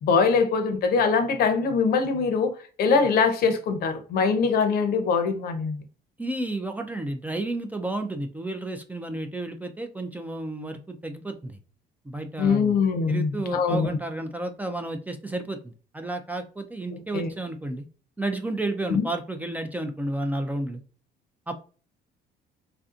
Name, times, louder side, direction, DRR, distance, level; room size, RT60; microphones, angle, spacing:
voice 1, 0.0-5.8 12.4-13.9 16.9-17.3 18.9-19.1, left 5 dB, 65° left, 0.7 m, -23 dB
voice 2, 6.2-11.6 12.0-12.8 13.1-15.6 15.9-17.8 18.2-20.8 21.5-21.6, right 2 dB, 10° right, 0.4 m, -31 dB
3.3 x 2.6 x 2.4 m
cardioid pair, 110°, 17 cm